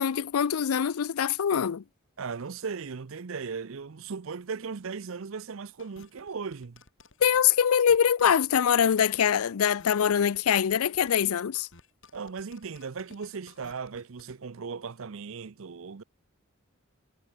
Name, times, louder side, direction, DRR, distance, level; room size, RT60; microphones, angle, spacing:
voice 1, 0.0-1.8 7.2-11.7, left 8 dB, 75° left, 0.4 m, -23 dB
voice 2, 2.2-6.8 12.1-16.0, right 5 dB, 60° right, 0.6 m, -37 dB
sound 1, 5.8-14.3, left 3 dB, 60° left, 4.6 m, -56 dB
head